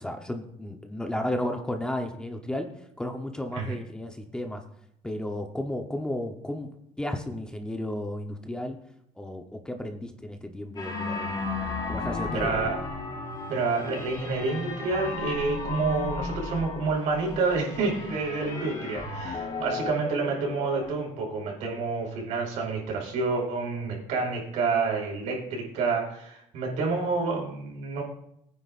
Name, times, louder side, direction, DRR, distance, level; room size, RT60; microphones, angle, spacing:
voice 1, 0.0-2.7 3.0-4.6 5.0-6.7 7.0-8.8 9.2-11.3 11.9-12.7, left 1 dB, 5° left, 4 dB, 0.9 m, -33 dB
sound 1, 10.8-20.9, left 3 dB, 35° left, 4.1 m, -34 dB
voice 2, 12.3-12.8 13.5-28.0, right 4 dB, 80° right, -1 dB, 4.8 m, -28 dB
21.5 x 9.5 x 2.5 m, 0.76 s
cardioid pair, 150°, 12 cm